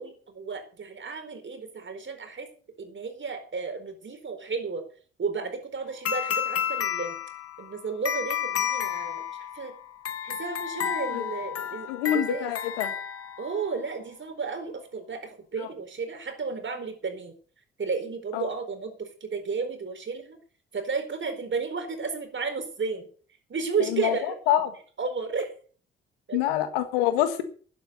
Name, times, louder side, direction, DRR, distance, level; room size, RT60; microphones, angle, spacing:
voice 1, 0.0-2.5 2.8-4.8 5.2-7.1 7.6-9.7 10.2-12.5 13.4-17.3 17.8-20.4 20.7-23.1 23.5-24.4 25.0-25.5 26.3-26.4, right 4 dB, 40° right, 7 dB, 4.4 m, -33 dB
sound 1, 6.0-13.7, left 9 dB, 50° left, 1.5 m, -31 dB
voice 2, 11.9-12.9 18.3-18.5 23.8-24.7 26.3-27.4, left 12 dB, 80° left, 11 dB, 1.6 m, -26 dB
12.0 x 9.5 x 6.7 m, 0.43 s
hypercardioid pair, 45°, 29 cm